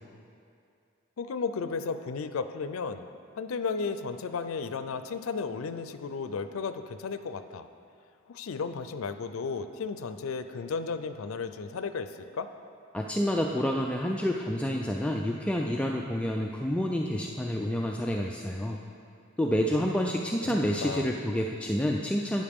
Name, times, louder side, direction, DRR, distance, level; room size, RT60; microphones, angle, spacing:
voice 1, 1.2-3.1 3.3-7.7 8.3-12.5 20.5-21.1, left 5 dB, 85° left, 10 dB, 0.5 m, -34 dB
voice 2, 12.9-18.8 19.4-22.4, equal, 5° left, 0 dB, 0.3 m, -28 dB
11.5 x 9.2 x 3.6 m, 2.4 s
head